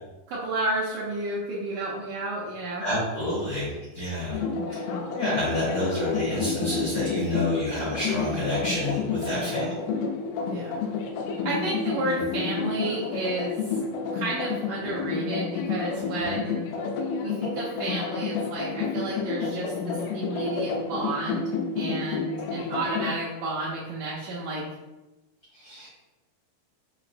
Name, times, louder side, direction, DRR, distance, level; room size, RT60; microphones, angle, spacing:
voice 1, 0.3-2.8 9.3-9.7 10.4-10.8 11.5-13.8 14.1-16.7 17.2-24.6, right 2 dB, 80° right, -7 dB, 1.8 m, -31 dB
voice 2, 2.8-4.4 4.7-4.9 5.2-9.9 16.2-16.3 25.5-25.9, left 1 dB, 70° left, -10 dB, 1.2 m, -29 dB
sound 1, 4.3-23.1, left 5 dB, 85° left, 2.5 m, -30 dB
5.7 x 3.0 x 2.5 m, 1.1 s
omnidirectional pair, 4.3 m